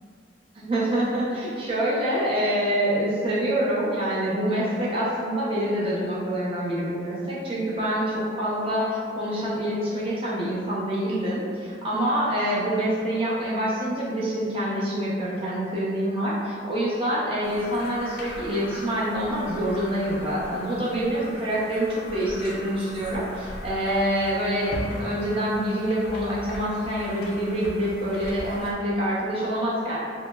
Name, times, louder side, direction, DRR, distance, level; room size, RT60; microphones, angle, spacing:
voice 1, 0.5-30.0, equal, 30° right, -7 dB, 0.6 m, -26 dB
sound 1, 17.4-28.7, left 1 dB, 55° left, 0.3 m, -39 dB
2.1 x 2.0 x 3.0 m, 2.2 s
head